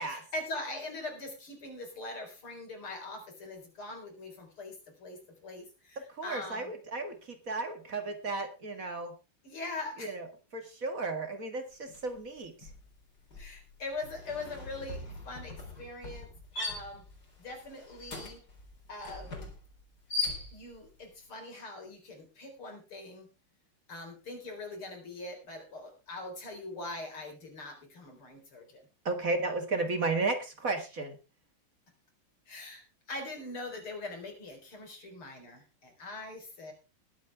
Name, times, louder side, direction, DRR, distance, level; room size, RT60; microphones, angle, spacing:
voice 1, 0.0-6.7 9.4-10.1 13.4-16.3 16.6-17.0 17.4-18.4 18.9-19.5 20.5-23.3 23.9-28.8 32.5-32.8 33.1-36.7, left 2 dB, 80° left, 3 dB, 5.1 m, -42 dB
voice 2, 6.1-9.1 10.0-10.3 10.5-12.7 29.1-31.2, right 3 dB, 40° right, 6 dB, 2.1 m, -34 dB
sound 1, 11.9-12.2 12.5-20.9, left 3 dB, 50° left, 4.4 m, -40 dB
21.0 x 8.6 x 3.5 m, 0.30 s
omnidirectional pair, 2.3 m